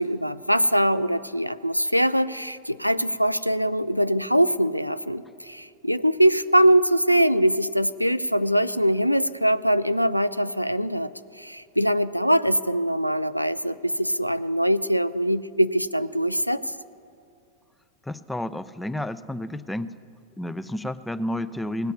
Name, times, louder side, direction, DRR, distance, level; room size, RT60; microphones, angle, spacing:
voice 1, 0.0-16.7, equal, 90° left, 15 dB, 0.3 m, -22 dB
voice 2, 18.0-20.0 20.4-21.9, left 1 dB, 5° left, 15 dB, 0.5 m, -31 dB
17.5 x 8.1 x 9.5 m, 2.4 s
figure-of-eight pair, 90°, 0 cm